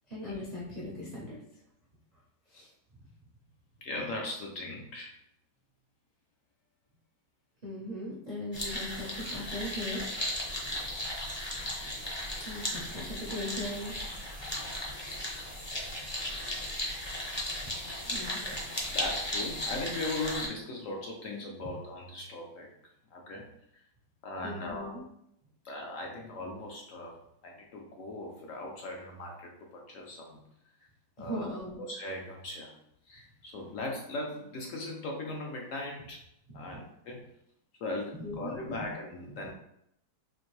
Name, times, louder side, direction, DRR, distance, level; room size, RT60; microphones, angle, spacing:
voice 1, 0.1-1.4 2.5-2.7 7.6-10.0 12.4-14.1 18.0-18.4 24.4-25.0 31.2-31.8 36.5-36.6 38.2-38.6, left 1 dB, 55° right, -6 dB, 0.4 m, -39 dB
voice 2, 3.8-5.1 18.4-18.5 18.9-22.7 23.1-23.5 24.2-25.0 25.6-27.2 27.4-30.4 31.2-31.5 31.8-32.8 33.1-36.2 36.5-37.2 37.8-39.5, left 2 dB, 70° left, 0 dB, 0.8 m, -39 dB
sound 1, 8.5-20.5, left 1 dB, 30° left, 0.5 m, -36 dB
4.3 x 2.5 x 3.1 m, 0.77 s
omnidirectional pair, 1.9 m